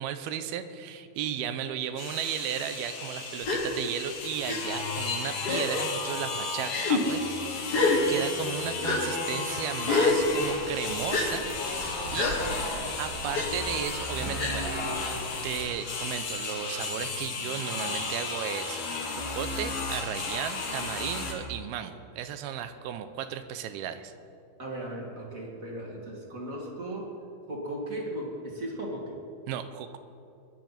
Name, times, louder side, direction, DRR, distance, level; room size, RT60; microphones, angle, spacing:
voice 1, 0.0-7.7 8.1-11.5 11.8-12.3 13.0-15.0 15.4-18.8 19.2-24.1 29.5-30.0, right 9 dB, 85° right, 10 dB, 2.7 m, -35 dB
sound 1, 2.0-21.3, left 4 dB, 80° left, 3.9 m, -34 dB
Gasp, 3.4-3.6 4.5-4.6 5.4-5.8 6.6-7.0 7.7-8.0 8.8-9.0 9.8-10.2 11.1-11.3 12.1-12.4 13.3-13.5 14.4-14.6, left 4 dB, 45° left, 1.4 m, -26 dB
sound 2, 10.2-15.7, right 2 dB, 55° right, 1.0 m, -41 dB
voice 2, 12.1-12.6 22.4-22.6 24.6-27.2 27.5-29.2, right 1 dB, 25° right, -1 dB, 2.0 m, -37 dB
21.5 x 10.5 x 5.9 m, 2.6 s
omnidirectional pair, 4.4 m